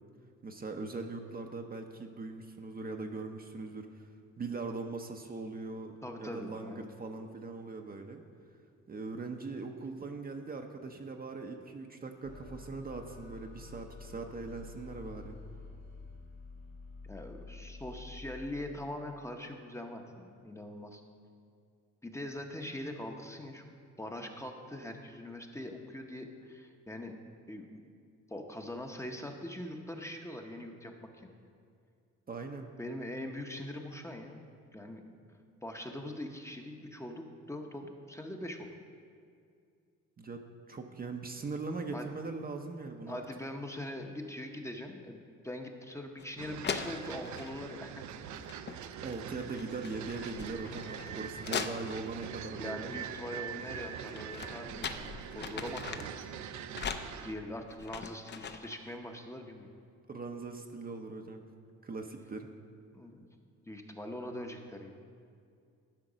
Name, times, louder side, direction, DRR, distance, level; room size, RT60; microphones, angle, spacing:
voice 1, 0.4-4.1 4.4-8.2 8.9-15.3 32.3-32.7 40.2-43.2 49.0-52.9 60.1-61.4 61.8-62.5, right 3 dB, 30° right, 4 dB, 0.7 m, -41 dB
voice 2, 6.0-6.9 13.7-13.8 17.0-21.0 22.0-23.6 24.0-27.1 27.5-27.8 28.3-31.4 32.8-34.4 34.7-35.1 35.6-38.7 41.9-42.1 43.1-48.0 50.8-50.9 52.4-55.1 55.3-56.1 57.2-59.7 62.9-63.3 63.7-65.0, left 1 dB, 10° left, 3 dB, 0.8 m, -42 dB
sound 1, 12.2-18.5, left 3 dB, 70° left, 2.0 m, -49 dB
sound 2, 46.2-46.3 46.6-47.6 48.3-48.8 49.1-52.3 53.8-56.2 56.7-58.8, left 6 dB, 35° left, 0.5 m, -40 dB
sound 3, 46.4-57.3, right 8 dB, 70° right, 0.5 m, -43 dB
12.0 x 5.1 x 5.0 m, 2.3 s
cardioid pair, 90°, 30 cm